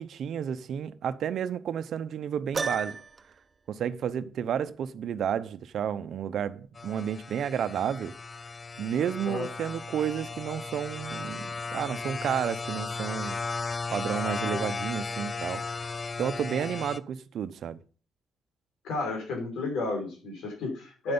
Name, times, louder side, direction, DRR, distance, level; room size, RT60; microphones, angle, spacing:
voice 1, 0.0-3.0 3.7-8.1 8.8-13.4 13.9-15.7 16.2-17.8, right 8 dB, 65° right, 0.8 m, -31 dB
Piano, 2.5-3.4, right 4 dB, 35° right, 1.1 m, -32 dB
sound 1, 6.8-17.0, left 4 dB, 30° left, 0.6 m, -35 dB
voice 2, 18.8-21.1, left 2 dB, 80° left, 5.3 m, -32 dB
9.9 x 7.8 x 5.5 m
cardioid pair, 90°, 0 cm